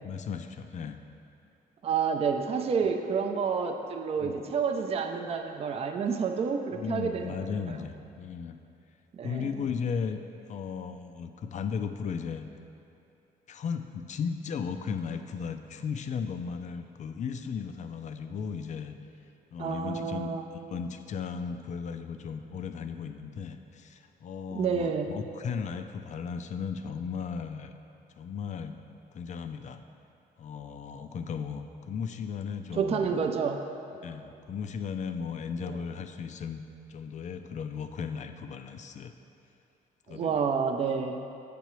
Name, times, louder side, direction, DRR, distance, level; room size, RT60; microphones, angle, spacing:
voice 1, 0.0-1.0 4.2-4.4 6.7-8.6 9.2-12.5 13.5-18.9 19.5-20.3 20.7-27.7 28.2-28.8 29.1-29.8 30.4-33.1 34.0-36.6 36.9-39.1 40.1-40.5, left 6 dB, 45° left, 8 dB, 0.4 m, -36 dB
voice 2, 1.8-7.4 7.7-7.8 9.2-9.5 19.6-20.5 24.5-25.1 32.8-33.6 35.6-35.8 40.1-41.2, right 6 dB, 40° right, 4 dB, 0.4 m, -29 dB
7.3 x 6.8 x 3.1 m, 2.8 s
cardioid pair, 105°, 16 cm